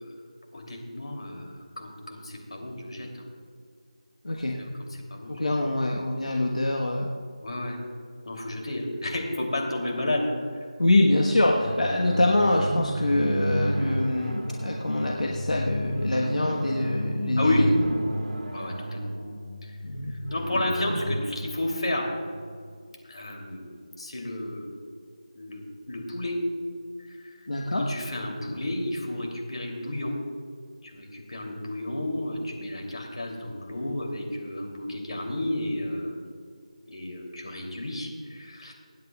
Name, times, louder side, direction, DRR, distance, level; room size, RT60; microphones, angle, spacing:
voice 1, 0.5-3.3 4.5-5.6 7.4-7.8 8.2-10.4 17.4-17.7 18.5-19.1 19.6-19.8 20.1-22.1 23.0-24.7 25.3-25.6 25.9-26.4 27.1-27.4 27.8-30.2 30.8-36.3 36.9-38.7, left 1 dB, 55° left, 0 dB, 3.0 m, -32 dB
voice 2, 4.2-4.6 5.3-7.1 10.8-17.7 19.8-20.1 27.5-27.9, left 1 dB, 75° left, -1 dB, 1.3 m, -24 dB
sound 1, 11.1-22.8, right 1 dB, 80° right, 1.8 m, -32 dB
26.0 x 9.4 x 2.4 m, 2.1 s
figure-of-eight pair, 175°, 4 cm